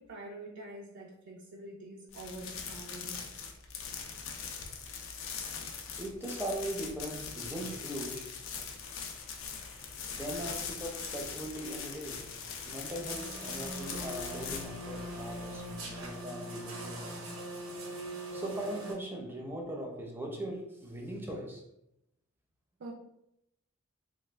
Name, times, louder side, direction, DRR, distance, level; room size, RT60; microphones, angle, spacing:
voice 1, 0.0-3.3 22.8-22.9, right 2 dB, 60° right, 0.4 m, -46 dB
sound 1, 2.1-16.1, left 6 dB, 70° left, 0.5 m, -42 dB
voice 2, 6.0-8.3 10.1-12.3 12.6-17.2 18.3-21.6, right 1 dB, 10° right, 0.6 m, -39 dB
sound 2, 9.1-15.8, left 1 dB, 30° left, 0.8 m, -58 dB
sound 3, 13.1-18.9, right 1 dB, 90° right, 0.7 m, -41 dB
3.4 x 2.3 x 3.2 m
head